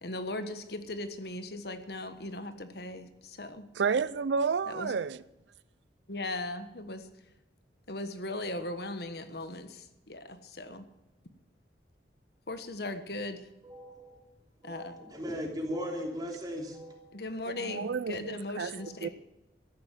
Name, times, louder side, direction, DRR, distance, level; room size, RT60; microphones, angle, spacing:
voice 1, 0.0-3.7 4.7-4.9 6.1-7.1 7.9-10.9 12.5-13.4 14.6-15.0 17.1-19.1, left 2 dB, 60° left, 1.4 m, -38 dB
voice 2, 3.7-5.2 17.5-18.7 19.0-19.1, right 5 dB, 75° right, 0.4 m, -30 dB
voice 3, 13.6-14.2 14.6-17.2 17.7-18.0 18.8-19.0, equal, 20° right, 3.1 m, -38 dB
14.0 x 11.0 x 7.6 m
head